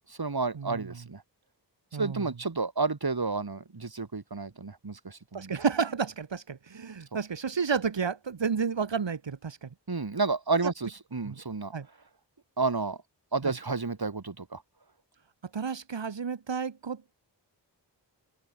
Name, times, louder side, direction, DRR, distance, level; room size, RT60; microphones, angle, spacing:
voice 1, 0.1-1.2 2.0-5.5 9.9-11.7 12.6-13.0 13.3-14.6, right 4 dB, 60° right, 3.3 m, -31 dB
voice 2, 1.9-2.2 5.3-9.7 11.3-11.4 11.7-11.9 13.4-13.5 15.5-17.0, right 6 dB, 85° right, 1.6 m, -31 dB
open air
wide cardioid pair, 55°, 43 cm